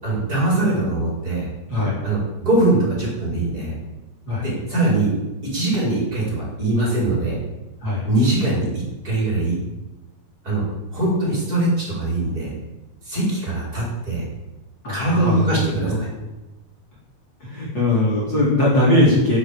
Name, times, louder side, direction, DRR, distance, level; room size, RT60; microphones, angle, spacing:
voice 1, 0.0-1.5 2.0-3.7 4.4-5.1 5.4-7.4 8.1-9.6 10.4-10.7 10.9-12.5 13.0-14.2 14.9-16.1, right 2 dB, 25° right, -4 dB, 5.3 m, -22 dB
voice 2, 14.8-16.0 17.4-19.4, left 1 dB, 30° left, -6 dB, 4.4 m, -20 dB
15.0 x 7.5 x 8.6 m, 1.0 s
omnidirectional pair, 3.9 m